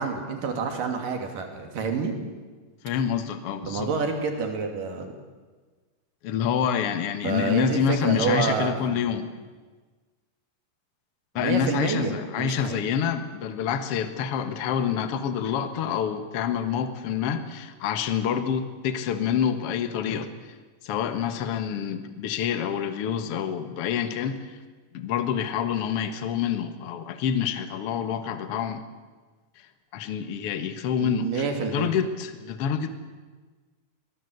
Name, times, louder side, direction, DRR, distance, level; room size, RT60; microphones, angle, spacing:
voice 1, 0.0-2.1 3.6-5.1 7.2-9.2 11.4-12.8 31.0-31.9, right 5 dB, 80° right, 4 dB, 4.3 m, -28 dB
voice 2, 2.8-3.9 6.2-9.3 11.4-20.3 20.8-24.6 24.9-28.8 29.9-31.4 31.7-32.9, left 8 dB, 55° left, 9 dB, 2.0 m, -27 dB
23.0 x 18.5 x 8.0 m, 1.4 s
omnidirectional pair, 3.8 m